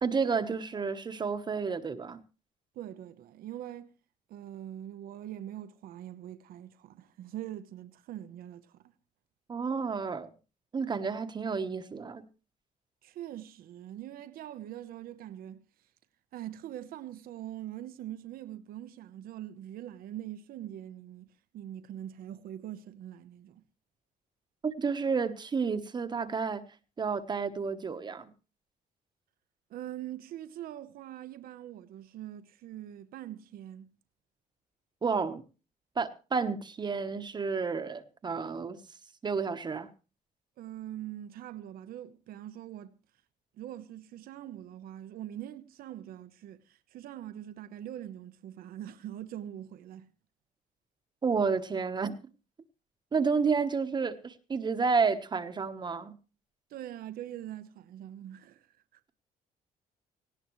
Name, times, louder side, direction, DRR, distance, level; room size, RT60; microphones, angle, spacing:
voice 1, 0.0-2.2 9.5-10.3 10.7-12.2 24.6-26.6 27.0-28.3 35.0-35.4 36.0-38.8 39.2-39.9 51.2-52.1 53.1-56.2, right 5 dB, 30° right, 1.2 m, -30 dB
voice 2, 2.7-3.9 4.3-8.9 13.0-15.9 16.3-23.6 29.7-33.9 40.6-42.9 43.6-50.1 56.7-59.0, right 12 dB, 70° right, 0.9 m, -43 dB
18.0 x 17.5 x 3.2 m
cardioid pair, 135°, 15 cm